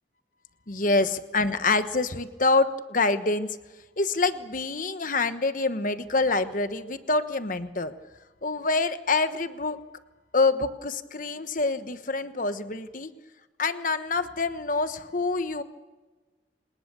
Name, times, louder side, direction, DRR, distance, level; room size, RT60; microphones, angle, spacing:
voice 1, 0.7-3.5 4.0-7.9 8.4-9.8 10.3-13.1 13.6-15.6, left 3 dB, 45° left, 10 dB, 1.1 m, -26 dB
28.0 x 19.0 x 6.9 m, 1.2 s
head